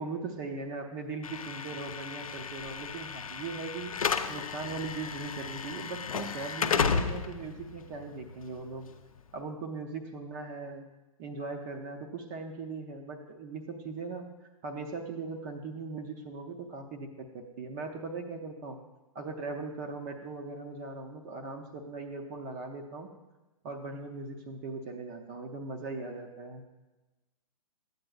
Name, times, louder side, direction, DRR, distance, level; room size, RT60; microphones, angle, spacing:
voice 1, 0.0-8.9 9.3-10.9 11.2-14.3 14.6-17.1 17.3-18.8 19.1-23.1 23.6-26.6, right 3 dB, 30° right, 3 dB, 0.6 m, -39 dB
Slam / Alarm, 1.2-9.3, left 6 dB, 70° left, 0.5 m, -34 dB
12.0 x 7.9 x 2.3 m, 1.1 s
figure-of-eight pair, 120°, 19 cm